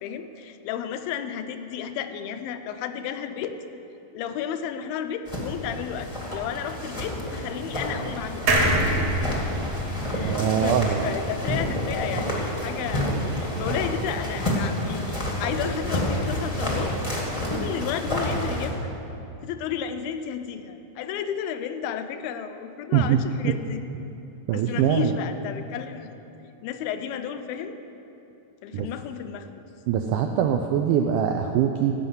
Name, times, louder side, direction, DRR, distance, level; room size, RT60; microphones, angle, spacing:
voice 1, 0.0-3.6 4.1-8.6 8.8-9.1 10.1-15.1 15.4-16.9 17.4-18.9 19.4-23.8 24.5-26.1 26.6-27.8 28.6-29.6, left 8 dB, 80° left, 9 dB, 2.4 m, -32 dB
sound 1, 5.3-18.7, equal, 30° left, 0.6 m, -29 dB
sound 2, 8.5-11.9 12.3-12.4 12.6-12.7, right 1 dB, 55° right, 2.1 m, -26 dB
voice 2, 10.2-11.0 22.9-23.2 24.5-25.1 28.7-28.9 29.9-31.9, right 9 dB, 90° right, 4 dB, 1.8 m, -22 dB
15.5 x 5.7 x 7.9 m, 2.8 s
omnidirectional pair, 4.2 m